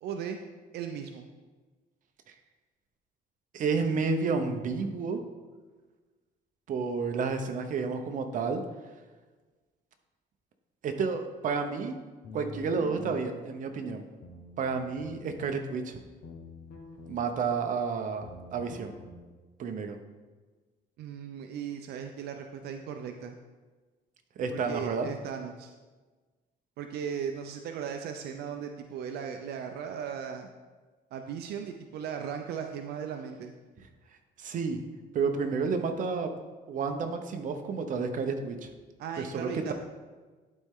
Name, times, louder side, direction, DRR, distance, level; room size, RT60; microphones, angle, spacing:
voice 1, 0.0-0.4 0.7-1.2 21.0-23.3 24.5-25.7 26.8-30.5 31.1-33.5 39.0-39.7, right 7 dB, 80° right, 5 dB, 0.6 m, -37 dB
voice 2, 3.5-5.2 6.7-8.6 10.8-12.0 12.3-14.0 14.6-16.0 17.1-18.3 18.5-18.9 19.6-20.0 24.4-25.1 34.4-34.8 35.1-36.3 36.7-38.7 39.2-39.7, right 5 dB, 55° right, 6 dB, 0.9 m, -30 dB
sound 1, 12.2-13.2 14.2-15.2 16.2-17.2 18.2-19.2, left 3 dB, 65° left, 1.3 m, -46 dB
11.5 x 4.3 x 3.7 m, 1.3 s
cardioid pair, 125°, 16 cm